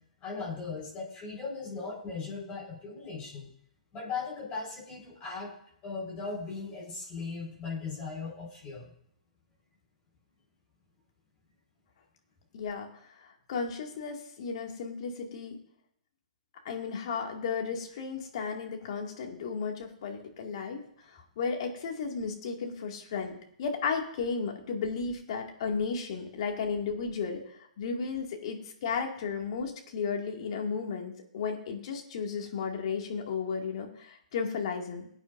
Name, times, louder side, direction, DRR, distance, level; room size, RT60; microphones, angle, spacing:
voice 1, 0.2-3.5 3.9-5.5 5.8-8.9, left 4 dB, 25° left, -3 dB, 4.7 m, -38 dB
voice 2, 12.5-12.9 13.2-15.6 16.6-23.3 23.6-35.1, left 5 dB, 50° left, 2 dB, 2.2 m, -34 dB
22.0 x 9.0 x 2.6 m, 0.69 s
figure-of-eight pair, 115°, 4 cm